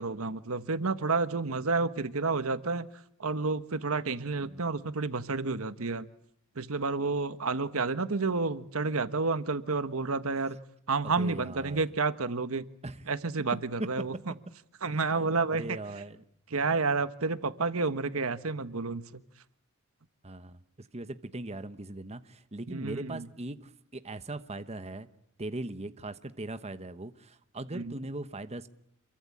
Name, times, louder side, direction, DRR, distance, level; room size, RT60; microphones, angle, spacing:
voice 1, 0.0-2.9 3.2-6.1 6.6-10.6 10.9-12.6 13.1-14.1 14.8-15.8 16.5-19.2 22.7-23.2 27.7-27.9, right 4 dB, 75° right, 12 dB, 1.3 m, -30 dB
voice 2, 11.0-11.8 12.8-13.1 13.8-13.9 15.1-16.2 20.2-25.1 25.4-28.7, right 2 dB, 30° right, 11 dB, 1.2 m, -40 dB
28.0 x 23.0 x 8.7 m, 0.69 s
head